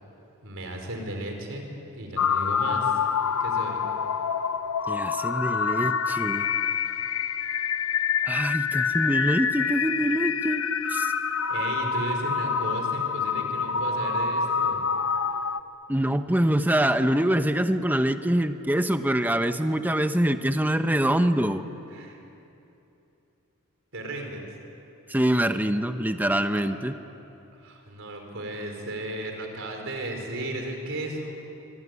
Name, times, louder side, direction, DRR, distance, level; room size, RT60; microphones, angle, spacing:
voice 1, 0.4-1.7 1.9-3.0 3.4-3.8 11.5-14.8 21.9-22.2 23.9-24.5 26.5-26.6 27.6-31.4, right 1 dB, 60° right, 3 dB, 4.9 m, -35 dB
sound 1, 2.2-15.6, left 6 dB, 70° left, 0.9 m, -27 dB
voice 2, 4.9-6.5 8.2-10.6 10.9-11.1 15.9-21.6 25.1-26.9, right 1 dB, 10° right, 9 dB, 1.0 m, -24 dB
24.5 x 24.5 x 9.8 m, 2.8 s
head